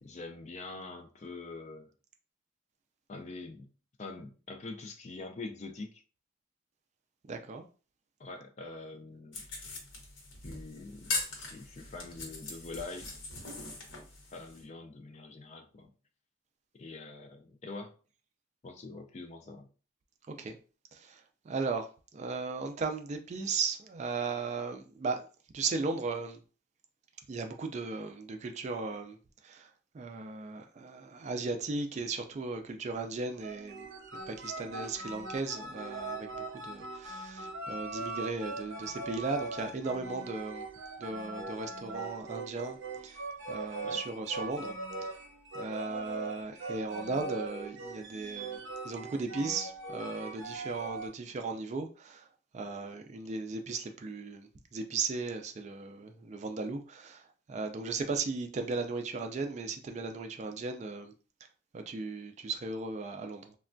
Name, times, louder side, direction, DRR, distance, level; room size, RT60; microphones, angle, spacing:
voice 1, 0.0-1.9 3.1-3.7 4.0-6.0 8.2-9.5 10.4-13.1 14.3-15.9 16.8-18.0 18.6-19.7 43.8-44.0, left 3 dB, 35° left, 0.4 m, -44 dB
voice 2, 7.3-7.6 20.3-20.6 20.9-21.2 21.5-25.3 25.5-26.4 27.3-29.2 29.4-29.7 29.9-33.9 34.3-40.7 41.0-42.8 43.0-43.2 43.5-44.8 45.5-48.6 48.8-52.3 52.5-57.2 57.5-61.1 61.7-63.5, right 4 dB, 35° right, 0.3 m, -36 dB
sound 1, 9.3-14.6, left 3 dB, 80° left, 0.8 m, -40 dB
sound 2, 33.4-51.1, right 3 dB, 70° right, 0.7 m, -41 dB
3.2 x 2.2 x 2.5 m
head